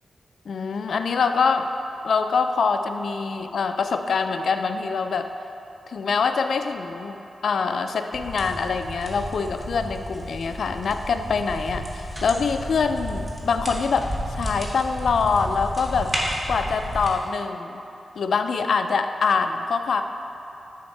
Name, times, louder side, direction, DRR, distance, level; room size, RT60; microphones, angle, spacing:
voice 1, 0.5-1.7 2.0-5.3 5.9-16.1 16.5-17.8 18.2-20.0, left 5 dB, 65° left, 7 dB, 0.3 m, -24 dB
sound 1, 8.1-17.1, equal, 15° right, 0.9 m, -32 dB
9.6 x 3.5 x 4.3 m, 2.9 s
wide cardioid pair, 160°, 0 cm